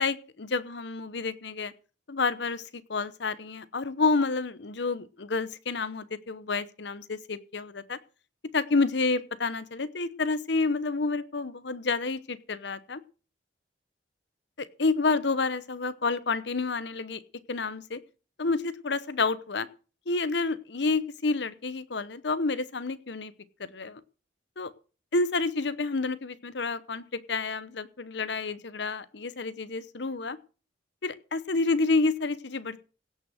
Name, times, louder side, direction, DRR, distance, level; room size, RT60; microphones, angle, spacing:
voice 1, 0.0-1.7 2.1-8.0 8.5-13.0 14.6-17.2 17.5-18.0 18.4-19.7 20.1-23.3 23.6-24.0 24.6-24.7 25.1-30.4 31.0-32.9, left 3 dB, 65° left, 15 dB, 0.9 m, -29 dB
16.5 x 6.3 x 6.4 m, 0.37 s
head